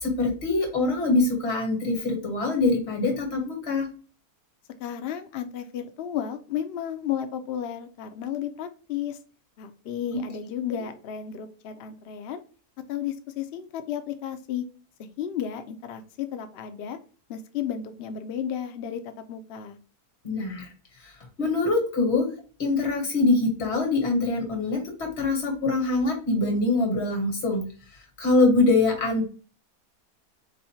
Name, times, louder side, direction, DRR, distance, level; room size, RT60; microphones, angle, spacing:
voice 1, 0.0-3.9 20.2-20.6 21.4-22.3 22.6-27.6 28.2-29.3, left 2 dB, 45° left, 2 dB, 1.6 m, -24 dB
voice 2, 4.8-9.2 9.6-12.4 12.9-14.7 15.0-17.0 17.3-19.8, left 9 dB, 80° left, 8 dB, 0.5 m, -33 dB
3.9 x 2.7 x 4.3 m, 0.37 s
omnidirectional pair, 1.7 m